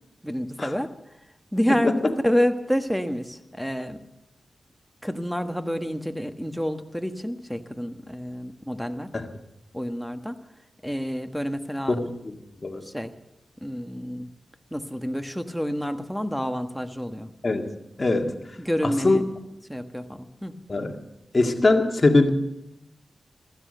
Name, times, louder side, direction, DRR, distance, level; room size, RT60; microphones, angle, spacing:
voice 1, 0.2-0.9 1.5-4.0 5.0-9.1 9.7-10.4 10.8-12.0 12.8-13.1 13.6-14.3 14.7-17.3 18.6-19.2 19.7-20.5, equal, ahead, 7 dB, 1.3 m, -28 dB
voice 2, 11.9-12.3 12.6-12.9 17.4-17.7 18.0-18.3 19.0-19.2 20.7-21.0 21.3-22.3, left 2 dB, 40° left, 4 dB, 2.0 m, -21 dB
15.5 x 14.0 x 6.7 m, 0.88 s
cardioid pair, 60°, 0 cm